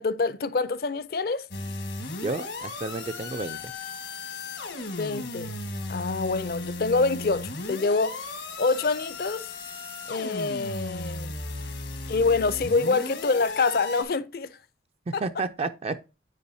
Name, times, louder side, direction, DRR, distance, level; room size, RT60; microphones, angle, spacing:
voice 1, 0.0-1.5 4.9-5.5 5.9-9.5 10.1-11.3 12.1-14.6 15.1-15.2, left 4 dB, 55° left, 0.5 m, -26 dB
sound 1, 1.5-14.0, left 2 dB, 80° left, 1.4 m, -36 dB
voice 2, 2.2-3.7 15.1-15.9, right 3 dB, 35° right, 0.3 m, -31 dB
8.3 x 4.7 x 2.7 m
head